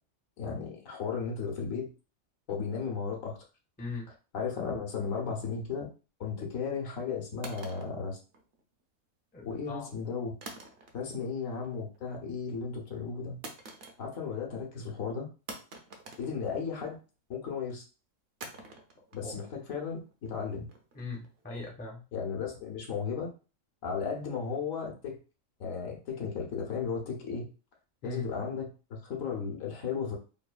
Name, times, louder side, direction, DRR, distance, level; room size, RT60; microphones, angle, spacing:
voice 1, 0.4-1.9 2.5-3.4 4.3-5.9 6.2-8.2 9.4-10.3 10.9-13.4 14.0-15.3 16.2-17.0 17.3-17.8 19.1-20.7 22.1-23.3 23.8-25.2 25.6-27.5 28.0-30.2, left 5 dB, 85° left, 1 dB, 1.2 m, -35 dB
sound 1, 7.4-8.8 10.4-11.3 11.6-12.0 13.4-14.4 14.7-14.8 15.5-17.0 18.4-21.4, right 3 dB, 60° right, 0.7 m, -48 dB
voice 2, 9.3-9.9 19.2-19.3 20.9-22.0 28.0-28.3, left 3 dB, 10° left, -1 dB, 0.4 m, -40 dB
3.1 x 2.2 x 2.3 m, 0.33 s
omnidirectional pair, 1.4 m